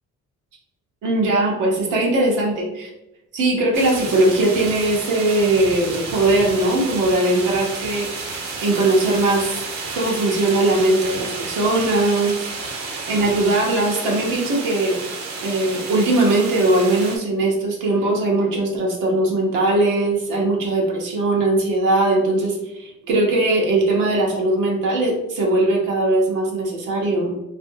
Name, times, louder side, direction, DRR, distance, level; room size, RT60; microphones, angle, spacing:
voice 1, 1.0-2.9 3.3-9.6 9.9-12.5 13.1-15.0 15.4-27.3, right 2 dB, 90° right, -1 dB, 0.9 m, -20 dB
sound 1, 3.7-17.2, right 4 dB, 60° right, 0.7 m, -31 dB
2.7 x 2.6 x 2.6 m, 0.94 s
cardioid pair, 90°, 30 cm